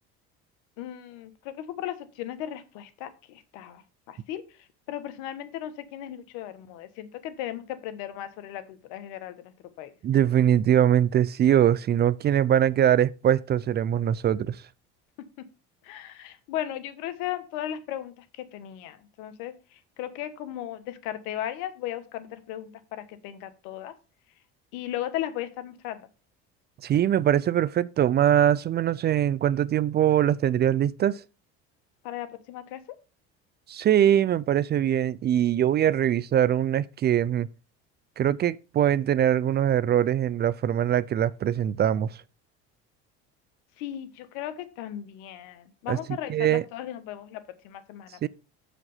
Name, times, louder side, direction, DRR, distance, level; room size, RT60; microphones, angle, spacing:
voice 1, 0.8-3.8 4.1-4.4 4.9-9.9 15.8-23.9 24.7-26.0 32.0-32.8 43.8-48.3, left 12 dB, 80° left, 1.2 m, -36 dB
voice 2, 10.0-14.6 26.8-31.2 33.7-37.5 38.2-42.1 45.9-46.0 46.3-46.6 48.2-48.3, right 10 dB, 35° right, 0.4 m, -22 dB
7.7 x 5.0 x 5.5 m
supercardioid pair, 95°, 31 cm